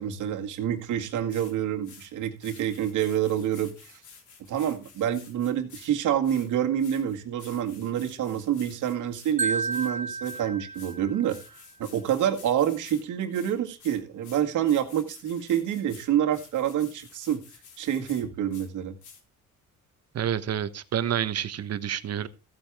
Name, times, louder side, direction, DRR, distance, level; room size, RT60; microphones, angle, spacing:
voice 1, 0.0-3.9 4.5-11.4 11.8-17.4 17.8-18.9, right 10 dB, 80° right, 1.9 m, -27 dB
sound 1, 0.9-1.0 1.3-1.5 1.8-2.1 2.4-5.9 6.2-9.3 9.7-9.9 10.2-10.4 10.7-11.0 11.3-13.0 13.3-18.2 18.5-18.7 19.0-19.2, left 5 dB, 75° left, 3.6 m, -51 dB
Marimba xylophone, 9.4-11.5, right 3 dB, 25° right, 0.8 m, -32 dB
voice 2, 20.1-22.3, right 9 dB, 55° right, 1.1 m, -28 dB
15.0 x 8.9 x 3.5 m
cardioid pair, 90°, 30 cm